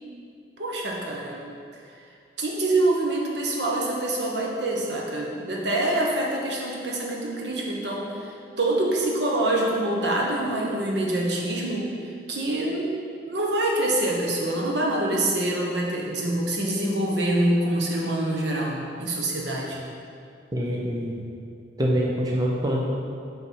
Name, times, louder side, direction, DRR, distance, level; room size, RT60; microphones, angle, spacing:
voice 1, 0.6-1.4 2.4-11.9 12.3-12.9 13.2-19.8, right 1 dB, 70° right, -2 dB, 1.1 m, -25 dB
voice 2, 20.5-21.2 21.8-22.8, equal, 20° right, -3 dB, 0.7 m, -25 dB
5.8 x 5.7 x 4.7 m, 2.4 s
head